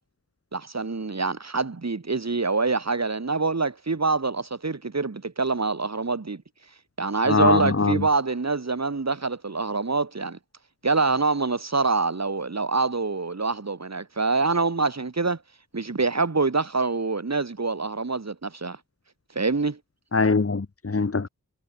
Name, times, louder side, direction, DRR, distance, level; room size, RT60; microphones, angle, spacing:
voice 1, 0.5-6.4 7.0-10.4 10.8-15.4 15.7-18.8 19.3-19.8, right 3 dB, 50° right, 3.3 m, -25 dB
voice 2, 7.3-8.0 20.1-21.3, left 4 dB, 40° left, 1.6 m, -22 dB
wide cardioid pair, 65°, 34 cm